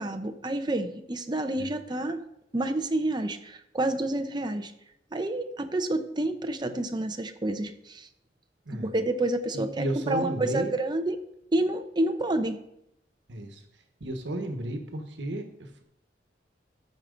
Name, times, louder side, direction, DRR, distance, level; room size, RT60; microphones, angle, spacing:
voice 1, 0.0-2.2 2.5-4.7 5.1-8.1 8.7-11.2 11.5-12.6, right 1 dB, 25° right, 7 dB, 0.8 m, -29 dB
voice 2, 9.5-10.7 13.3-13.6 14.0-15.8, right 1 dB, 85° right, 5 dB, 1.3 m, -33 dB
13.5 x 6.0 x 3.9 m, 0.79 s
head